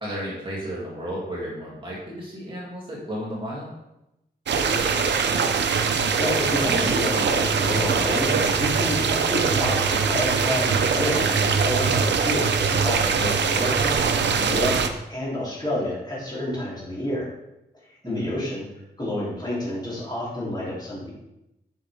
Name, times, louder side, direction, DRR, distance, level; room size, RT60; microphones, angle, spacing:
voice 1, 0.0-3.7 18.0-18.3, equal, 30° right, -6 dB, 2.4 m, -33 dB
sound 1, 4.5-14.9, right 5 dB, 90° right, 0.7 m, -22 dB
voice 2, 5.9-14.8 15.1-17.3 17.8-18.7 19.0-21.1, left 1 dB, 25° left, -7 dB, 3.1 m, -29 dB
8.0 x 6.3 x 3.5 m, 0.91 s
wide cardioid pair, 140°, 18 cm